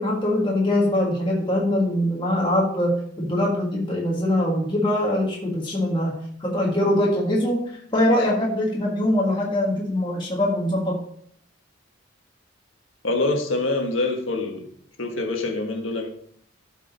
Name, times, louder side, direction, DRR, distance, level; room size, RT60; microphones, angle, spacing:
voice 1, 0.0-7.6 7.9-11.0, left 1 dB, 25° left, -3 dB, 1.6 m, -23 dB
voice 2, 13.0-14.7 15.0-16.1, left 2 dB, 75° left, 3 dB, 1.5 m, -25 dB
12.0 x 5.1 x 4.0 m, 0.63 s
head